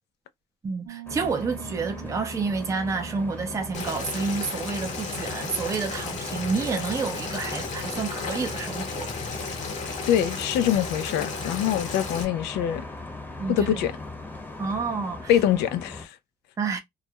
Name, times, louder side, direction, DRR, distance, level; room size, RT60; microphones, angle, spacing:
voice 1, 0.6-9.1 11.4-11.5 13.4-13.9 14.6-15.3 16.6-16.8, right 4 dB, 20° right, 0.5 m, -29 dB
Piano, 0.9-9.4, right 16 dB, 80° right, 0.5 m, -47 dB
sound 1, 1.1-16.1, left 3 dB, 10° left, 0.8 m, -39 dB
Boiling, 3.7-12.2, left 4 dB, 45° left, 0.8 m, -34 dB
voice 2, 10.1-12.8 13.5-13.9 15.3-16.1, left 10 dB, 80° left, 0.4 m, -24 dB
2.3 x 2.1 x 2.8 m
cardioid pair, 110°, 17 cm